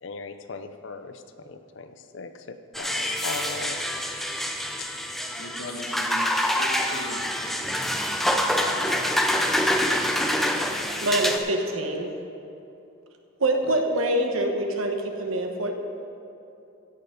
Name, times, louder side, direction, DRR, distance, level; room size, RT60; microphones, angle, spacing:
voice 1, 0.0-3.8 4.8-4.9 10.1-10.6 13.7-13.8, left 4 dB, 60° left, 9 dB, 0.6 m, -39 dB
sound 1, 2.7-11.4, equal, ahead, 0.5 m, -26 dB
voice 2, 5.3-7.3 8.4-8.8, left 1 dB, 80° left, 1 dB, 1.5 m, -38 dB
voice 3, 11.0-12.1 13.4-15.7, right 1 dB, 80° right, 4 dB, 1.2 m, -25 dB
16.0 x 6.8 x 5.2 m, 2.8 s
head